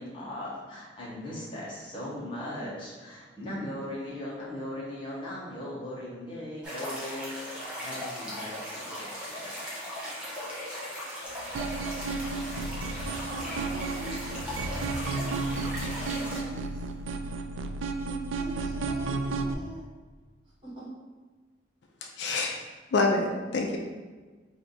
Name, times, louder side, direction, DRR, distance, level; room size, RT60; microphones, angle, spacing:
voice 1, 0.0-9.5, left 1 dB, 25° left, -7 dB, 1.1 m, -38 dB
sound 1, 6.6-16.4, equal, 5° right, 0.8 m, -38 dB
sound 2, 11.2-17.5, right 1 dB, 50° right, 0.7 m, -46 dB
sound 3, 11.5-19.5, right 3 dB, 75° right, 0.3 m, -33 dB
voice 2, 13.2-14.6 15.1-16.8 18.0-19.8 20.6-20.9, right 1 dB, 25° right, -9 dB, 1.4 m, -44 dB
voice 3, 22.0-22.5 22.9-23.8, left 3 dB, 60° left, 1 dB, 0.4 m, -26 dB
3.3 x 2.6 x 4.0 m, 1.4 s
head